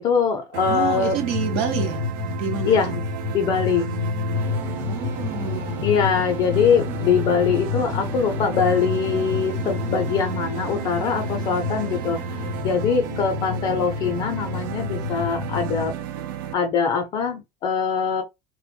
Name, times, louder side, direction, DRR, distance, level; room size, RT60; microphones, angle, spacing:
voice 1, 0.0-1.2 2.6-3.0 3.3-4.0 5.8-12.2 12.6-15.9 16.5-18.2, left 6 dB, 40° left, 0.5 m, -22 dB
sound 1, 0.5-16.5, right 11 dB, 85° right, 0.4 m, -33 dB
sound 2, 0.6-15.9, left 6 dB, 90° left, 0.5 m, -30 dB
voice 2, 0.7-2.0 2.4-3.0 4.8-6.2, right 7 dB, 60° right, 0.9 m, -29 dB
sound 3, 4.3-12.6, right 1 dB, 15° right, 0.7 m, -39 dB
2.1 x 2.1 x 3.1 m
supercardioid pair, 140°, 11 cm